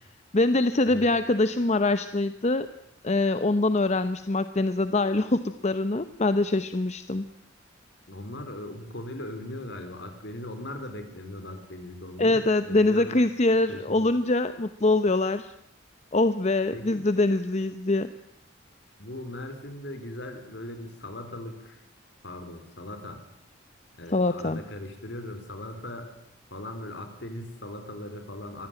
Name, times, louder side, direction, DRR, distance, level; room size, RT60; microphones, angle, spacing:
voice 1, 0.3-2.7 3.0-7.3 12.2-15.5 16.1-18.1 24.1-24.6, left 2 dB, 35° left, 11 dB, 0.8 m, -24 dB
voice 2, 8.1-13.2 13.7-14.1 16.7-17.1 19.0-21.8 22.2-23.2 24.0-26.1 26.5-28.7, left 1 dB, 65° left, 8 dB, 4.1 m, -39 dB
23.5 x 16.0 x 9.0 m, 0.77 s
head